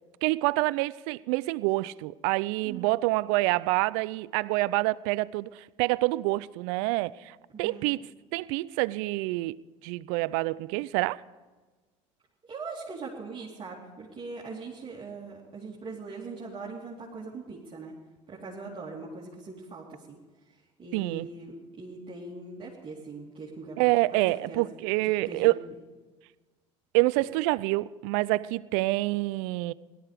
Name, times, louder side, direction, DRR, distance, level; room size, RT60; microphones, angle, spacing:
voice 1, 0.2-8.0 8.3-9.6 9.8-11.2 20.9-21.3 23.8-25.6 26.9-29.7, right 21 dB, 70° right, 0.4 m, -27 dB
voice 2, 7.5-7.9 12.5-17.9 18.3-20.2 20.5-24.7 25.0-25.5, right 3 dB, 35° right, 2.9 m, -41 dB
17.5 x 12.5 x 5.1 m
hypercardioid pair, 75°, 16 cm